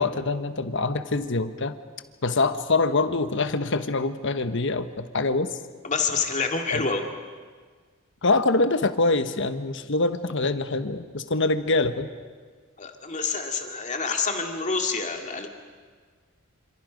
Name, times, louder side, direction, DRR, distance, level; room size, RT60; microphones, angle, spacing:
voice 1, 0.0-1.8 2.2-5.6 6.7-6.8 8.2-12.1, left 3 dB, 60° left, 10 dB, 1.2 m, -24 dB
voice 2, 5.8-7.0 12.8-15.5, left 4 dB, 35° left, 4 dB, 2.2 m, -27 dB
28.0 x 27.0 x 5.2 m, 1.5 s
head